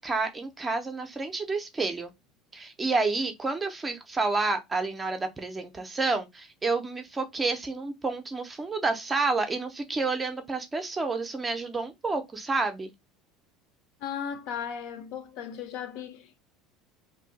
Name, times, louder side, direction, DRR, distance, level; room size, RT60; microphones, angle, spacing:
voice 1, 0.0-2.1 2.5-12.9, right 3 dB, 10° right, 0.5 m, -29 dB
voice 2, 14.0-16.4, left 8 dB, 55° left, 0.6 m, -36 dB
2.7 x 2.6 x 3.8 m
cardioid pair, 170°, 0 cm